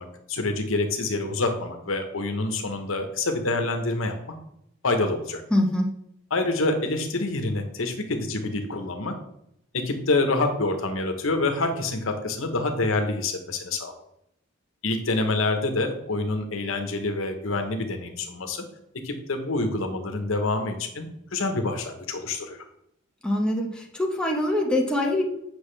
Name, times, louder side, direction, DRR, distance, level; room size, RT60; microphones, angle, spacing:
voice 1, 0.0-4.2 4.8-5.4 6.3-9.1 9.7-13.9 14.8-18.7 19.0-22.6, left 2 dB, 75° left, 5 dB, 1.1 m, -27 dB
voice 2, 5.5-5.9 23.2-25.2, left 1 dB, 5° left, 0 dB, 1.0 m, -24 dB
8.0 x 6.1 x 3.3 m, 0.77 s
head